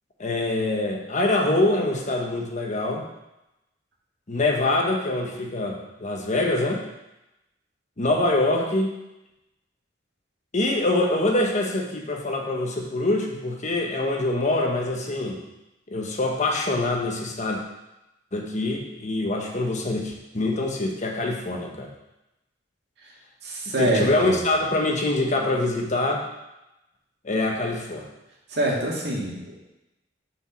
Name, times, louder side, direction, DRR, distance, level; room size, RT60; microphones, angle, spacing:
voice 1, 0.2-3.1 4.3-6.8 8.0-9.0 10.5-15.4 15.9-17.6 18.3-21.9 23.8-26.3 27.2-28.0, left 2 dB, 40° left, 1 dB, 1.1 m, -24 dB
voice 2, 23.4-24.4 28.5-29.6, right 1 dB, 65° right, -3 dB, 2.1 m, -25 dB
6.4 x 5.0 x 6.0 m, 0.94 s
head